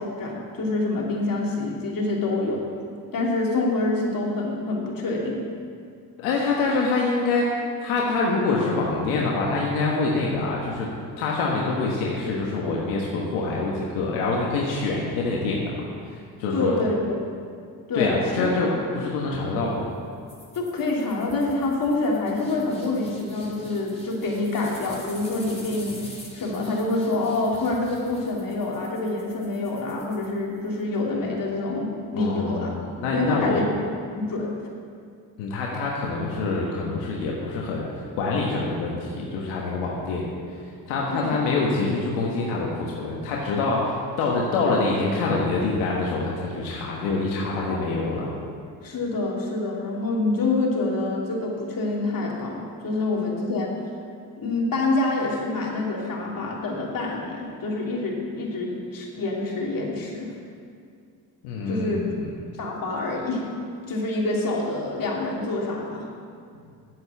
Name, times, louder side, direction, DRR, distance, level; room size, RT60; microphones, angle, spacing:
voice 1, 0.0-2.6 3.1-5.4 16.5-17.0 17.9-18.5 20.5-26.0 26.3-32.8 33.1-33.6 34.1-34.5 41.1-41.4 47.7-47.8 48.8-53.7 54.4-60.3 61.7-62.0 62.6-63.4 63.9-66.1, left 2 dB, 50° left, -2 dB, 2.9 m, -26 dB
voice 2, 6.2-10.9 11.2-16.7 17.9-19.9 32.1-33.6 35.4-37.9 38.2-40.3 40.9-48.3 61.4-62.3, left 3 dB, 85° left, -3 dB, 1.4 m, -25 dB
sound 1, 20.3-30.8, left 1 dB, 15° left, 2.9 m, -45 dB
8.1 x 7.9 x 8.1 m, 2.3 s
supercardioid pair, 60°, 43 cm